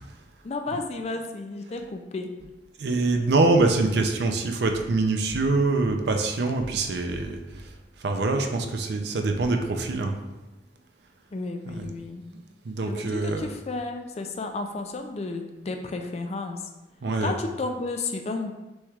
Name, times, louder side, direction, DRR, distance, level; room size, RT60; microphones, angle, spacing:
voice 1, 0.4-2.3 11.3-12.2 12.9-16.6 17.2-18.5, left 3 dB, 35° left, 5 dB, 0.4 m, -32 dB
voice 2, 2.8-7.7 8.0-10.1 11.7-11.9 12.7-13.5 17.0-17.4, right 3 dB, 70° right, 5 dB, 0.5 m, -24 dB
6.1 x 3.2 x 2.4 m, 1.0 s
head